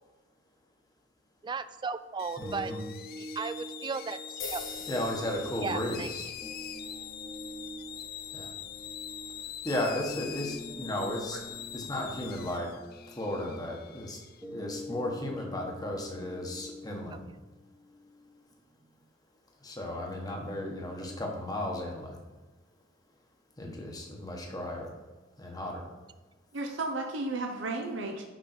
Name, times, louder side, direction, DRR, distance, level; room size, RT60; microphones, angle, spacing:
voice 1, 1.4-2.7 3.2-4.6 5.6-6.1 17.1-17.2, right 5 dB, 25° right, 13 dB, 0.3 m, -36 dB
sound 1, 2.2-14.4, left 10 dB, 50° left, 0.4 m, -44 dB
voice 2, 2.4-2.8 4.9-6.3 8.3-8.5 9.6-12.7 13.1-14.2 14.5-17.3 19.6-22.2 23.6-24.9 25.4-25.9, left 1 dB, 20° left, 0 dB, 1.3 m, -35 dB
sound 2, 2.4-18.4, left 1 dB, ahead, 1.2 m, -46 dB
sound 3, 4.4-12.5, left 4 dB, 90° left, 1.4 m, -48 dB
voice 3, 26.5-28.2, right 2 dB, 70° right, 2 dB, 0.9 m, -33 dB
6.5 x 5.5 x 4.4 m, 1.2 s
head